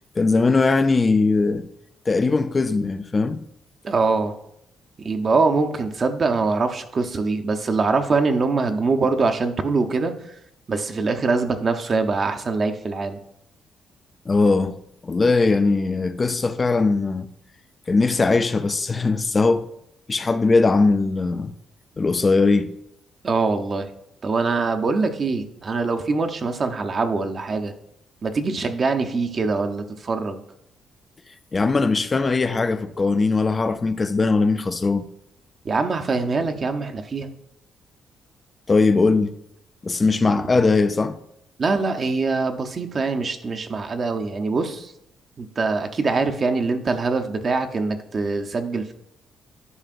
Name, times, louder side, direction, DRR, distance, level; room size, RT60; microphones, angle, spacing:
voice 1, 0.2-1.7 2.1-3.4 14.3-14.8 15.0-17.3 17.9-19.7 20.1-21.5 22.0-22.7 31.5-35.1 38.7-39.4 39.8-41.2, left 3 dB, 30° left, 0.4 m, -20 dB
voice 2, 3.8-4.3 5.0-10.1 10.7-13.2 23.2-23.9 24.2-27.7 28.2-30.4 35.6-37.3 41.6-44.9 45.4-48.9, right 4 dB, 40° right, 0.7 m, -23 dB
11.0 x 5.0 x 2.5 m
cardioid pair, 90°, 0 cm